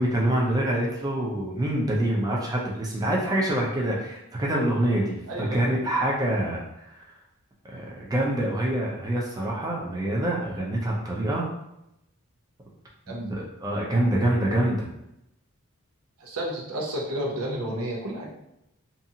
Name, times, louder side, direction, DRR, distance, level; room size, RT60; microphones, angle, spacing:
voice 1, 0.0-6.9 7.7-11.5 13.1-14.9, right 1 dB, 15° right, -3 dB, 0.4 m, -26 dB
voice 2, 5.3-5.6 13.1-13.3 16.2-18.3, right 1 dB, 90° right, -1 dB, 0.7 m, -31 dB
2.7 x 2.4 x 2.7 m, 0.84 s
head